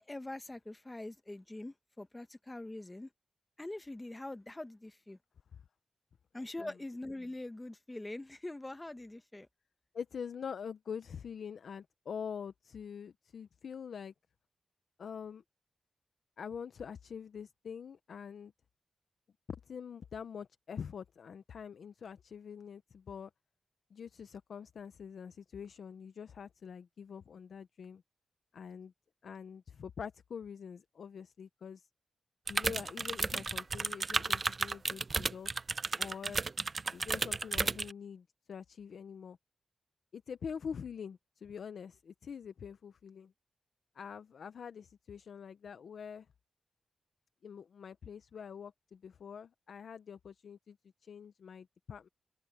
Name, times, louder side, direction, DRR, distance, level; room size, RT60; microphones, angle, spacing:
voice 1, 0.0-3.1 3.6-5.2 6.3-9.5, left 2 dB, 20° left, 0.9 m, -43 dB
voice 2, 9.9-14.1 15.0-15.4 16.4-18.5 19.7-23.3 23.9-28.0 28.5-28.9 29.2-31.9 32.5-35.5 36.0-36.4 36.9-39.4 40.1-43.3 44.0-46.3 47.4-50.8 51.0-52.1, left 7 dB, 80° left, 0.6 m, -45 dB
sound 1, 32.5-37.9, right 4 dB, 45° right, 0.5 m, -33 dB
wide cardioid pair, 85°, 0 cm